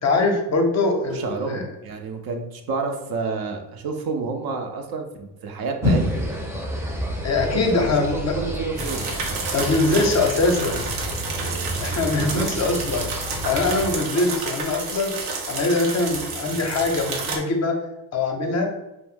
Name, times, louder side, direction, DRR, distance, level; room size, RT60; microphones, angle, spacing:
voice 1, 0.0-1.6 7.2-8.3 9.5-10.8 11.8-13.1 13.4-15.1 15.5-17.8 18.1-18.7, left 3 dB, 35° left, 3 dB, 0.6 m, -22 dB
voice 2, 1.1-6.2 7.5-9.1 12.1-12.5, right 4 dB, 50° right, 4 dB, 0.5 m, -29 dB
sound 1, 5.8-14.0, equal, 5° right, 0.6 m, -29 dB
sound 2, 8.8-17.4, right 4 dB, 90° right, 0.7 m, -30 dB
2.5 x 2.0 x 3.5 m, 0.94 s
supercardioid pair, 75°, 47 cm